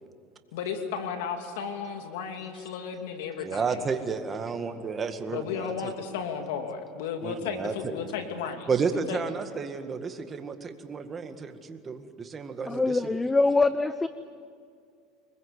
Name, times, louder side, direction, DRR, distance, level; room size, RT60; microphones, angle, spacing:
voice 1, 0.5-3.9 5.3-9.2, left 6 dB, 85° left, 5 dB, 2.7 m, -34 dB
voice 2, 3.4-5.9 7.2-8.0 8.7-13.0, right 5 dB, 25° right, 7 dB, 1.9 m, -32 dB
voice 3, 12.7-14.1, left 3 dB, 15° left, 14 dB, 0.7 m, -23 dB
24.5 x 21.5 x 8.4 m, 2.2 s
supercardioid pair, 110°, 0 cm